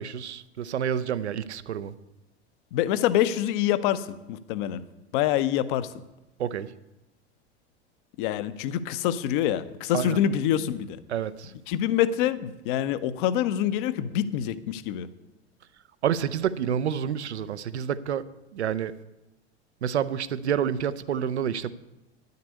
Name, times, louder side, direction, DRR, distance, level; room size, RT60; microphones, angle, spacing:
voice 1, 0.0-1.9 6.4-6.7 9.9-10.2 11.1-11.5 16.0-18.2 18.5-18.9 19.8-21.7, right 8 dB, 70° right, 0.7 m, -28 dB
voice 2, 2.7-4.8 5.1-5.9 8.2-11.0 11.7-15.1, left 11 dB, 45° left, 0.8 m, -26 dB
10.5 x 6.7 x 8.3 m
figure-of-eight pair, 85°, 34 cm